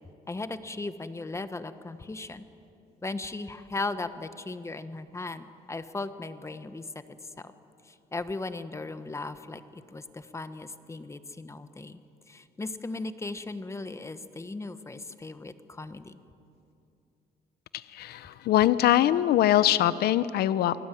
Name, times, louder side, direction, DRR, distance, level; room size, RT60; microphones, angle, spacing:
voice 1, 0.3-2.4 3.0-6.8 7.4-7.5 7.8-12.0 12.3-16.2, left 3 dB, 15° left, 11 dB, 1.3 m, -37 dB
voice 2, 17.7-20.8, left 13 dB, 70° left, 15 dB, 0.8 m, -23 dB
29.0 x 19.5 x 9.3 m, 2.7 s
cardioid pair, 110°, 17 cm